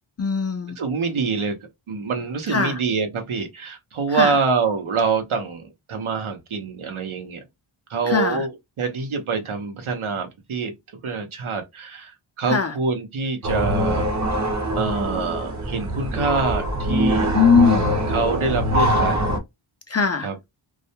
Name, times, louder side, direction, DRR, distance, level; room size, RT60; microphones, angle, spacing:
voice 1, 0.2-0.8 2.5-2.8 4.1-4.4 8.1-8.4 12.5-12.7 17.3-18.0 19.9-20.3, left 5 dB, 35° left, 0.4 m, -20 dB
voice 2, 0.8-1.6 1.9-7.4 7.9-10.7 11.0-14.1 14.7-17.3 18.1-19.2 20.2-20.4, right 4 dB, 75° right, 0.8 m, -25 dB
sound 1, 13.4-19.4, equal, 35° right, 0.7 m, -23 dB
2.3 x 2.1 x 2.7 m
wide cardioid pair, 70°, 49 cm